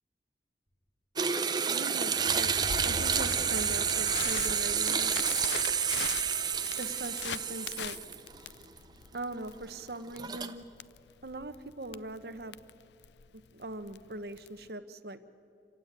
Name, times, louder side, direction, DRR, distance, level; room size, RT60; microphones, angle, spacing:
sound 1, 1.2-8.4 8.8-8.9 10.1-10.5, right 7 dB, 25° right, 0.8 m, -30 dB
voice 1, 1.7-2.5 2.8-5.1 6.8-8.0 9.1-10.6 11.2-12.6 13.5-15.2, right 2 dB, 65° right, 11 dB, 1.0 m, -41 dB
Fire, 2.0-8.4 9.1-9.2, equal, 45° left, 4.6 m, -46 dB
Crackle, 2.7-14.7, left 8 dB, 80° left, 0.5 m, -42 dB
27.5 x 16.0 x 9.7 m, 2.7 s
head